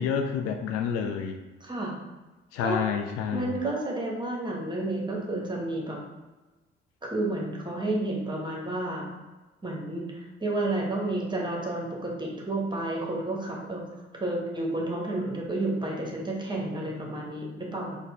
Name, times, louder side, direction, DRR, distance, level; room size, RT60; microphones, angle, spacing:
voice 1, 0.0-1.4 2.5-3.6, left 7 dB, 55° left, 4 dB, 0.4 m, -29 dB
voice 2, 1.6-1.9 2.6-2.8 3.3-6.0 7.0-9.1 9.6-13.8 14.1-18.0, right 2 dB, 15° right, -1 dB, 1.0 m, -31 dB
4.2 x 2.3 x 3.3 m, 1.2 s
figure-of-eight pair, 45°, 29 cm